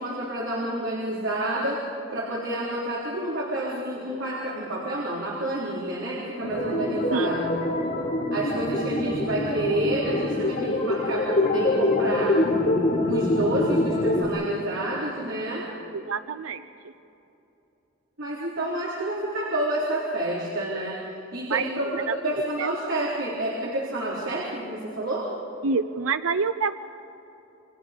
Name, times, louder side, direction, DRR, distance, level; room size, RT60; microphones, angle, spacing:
voice 1, 0.0-1.8 2.1-7.5 8.3-12.4 13.1-15.7 18.2-21.0 21.3-25.3, right 1 dB, 65° right, -4 dB, 3.9 m, -29 dB
sound 1, 6.4-14.2, left 2 dB, 45° left, 4.3 m, -25 dB
voice 2, 15.9-16.7 21.5-21.7 22.1-22.2 22.6-22.7 25.6-26.7, right 5 dB, 85° right, 11 dB, 0.6 m, -26 dB
29.5 x 25.5 x 5.1 m, 2.9 s
head